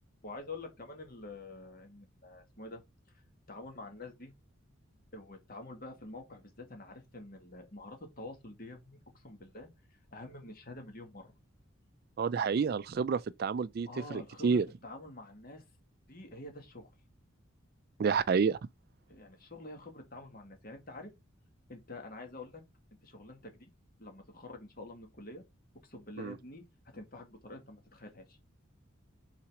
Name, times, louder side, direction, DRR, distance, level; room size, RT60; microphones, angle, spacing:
voice 1, 0.2-2.8 3.1-3.2 3.5-4.3 5.1-9.7 10.1-11.3 13.9-15.6 16.1-16.9 19.1-21.1 21.7-22.6 23.0-23.7 24.0-25.4 25.8-28.4, left 2 dB, 45° left, 1.9 m, -47 dB
voice 2, 12.2-14.7 18.0-18.6 26.2-26.4, right 5 dB, 45° right, 0.3 m, -29 dB
5.8 x 4.2 x 4.8 m
head